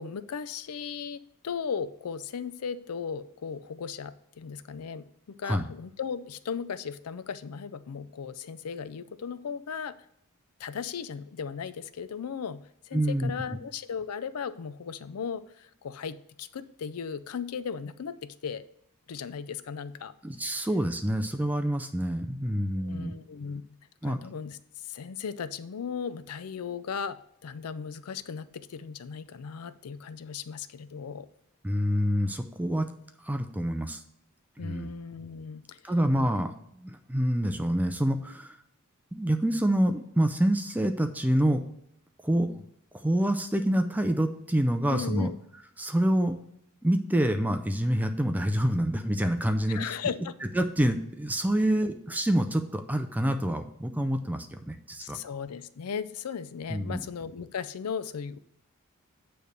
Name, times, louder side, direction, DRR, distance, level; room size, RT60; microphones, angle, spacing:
voice 1, 0.0-10.0 10.6-18.6 19.1-20.1 22.8-23.6 24.0-31.3 34.6-35.9 44.9-45.4 49.7-50.3 55.0-58.4, left 6 dB, 85° left, 14 dB, 0.5 m, -37 dB
voice 2, 12.9-13.3 20.2-23.1 24.0-24.2 31.6-32.9 33.2-34.0 34.6-34.9 35.8-38.6 39.1-41.6 42.2-42.7 42.9-45.3 45.8-46.3 46.8-50.0 50.5-55.2 56.7-57.0, right 1 dB, 5° right, 7 dB, 0.4 m, -27 dB
8.9 x 3.4 x 6.5 m, 0.74 s
head